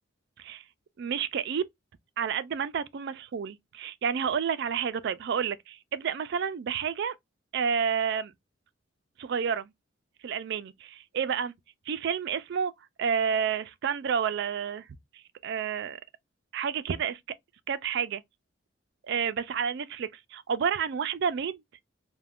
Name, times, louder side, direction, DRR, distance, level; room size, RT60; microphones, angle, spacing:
voice 1, 1.0-1.6 2.2-7.2 7.5-8.3 9.2-9.7 10.2-11.5 11.9-12.7 13.0-14.9 15.1-16.0 16.5-17.2 17.7-18.2 19.0-21.6, right 7 dB, 60° right, 0.4 m, -30 dB
2.4 x 2.2 x 3.4 m
head